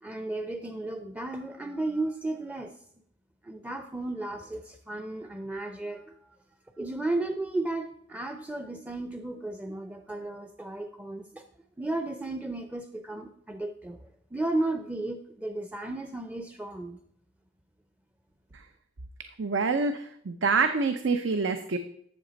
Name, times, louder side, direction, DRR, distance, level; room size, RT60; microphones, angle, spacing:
voice 1, 0.0-2.8 3.4-6.4 6.8-11.4 11.8-17.0, right 2 dB, 10° right, 7 dB, 0.5 m, -34 dB
voice 2, 19.4-21.8, right 4 dB, 75° right, 9 dB, 0.7 m, -26 dB
12.5 x 7.8 x 4.0 m, 0.69 s
head